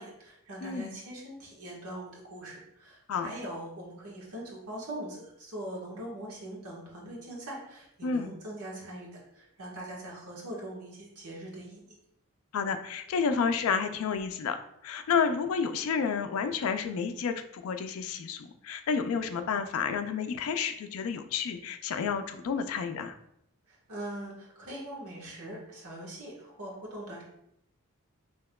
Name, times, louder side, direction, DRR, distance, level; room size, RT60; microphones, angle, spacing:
voice 1, 0.0-12.0 23.7-27.2, right 1 dB, 80° right, -3 dB, 1.4 m, -42 dB
voice 2, 0.6-1.0 3.1-3.3 8.0-8.3 12.5-23.2, left 6 dB, 70° left, 8 dB, 0.3 m, -30 dB
5.6 x 2.9 x 2.2 m, 0.76 s
head